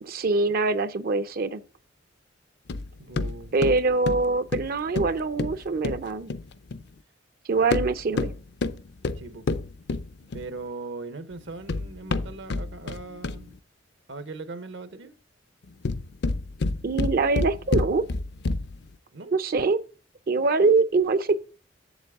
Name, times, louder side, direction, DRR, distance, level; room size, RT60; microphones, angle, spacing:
voice 1, 0.0-1.6 3.5-6.3 7.5-8.3 16.8-18.0 19.3-19.8 20.3-21.4, right 3 dB, 50° right, 0.5 m, -23 dB
sound 1, 2.7-6.9 7.6-10.6 11.4-13.6 15.6-18.9, left 3 dB, 60° left, 0.5 m, -30 dB
voice 2, 3.0-3.5 9.1-9.5 10.3-13.5 14.1-15.2 19.1-19.4, right 3 dB, 75° right, 0.8 m, -39 dB
7.7 x 7.2 x 3.5 m
head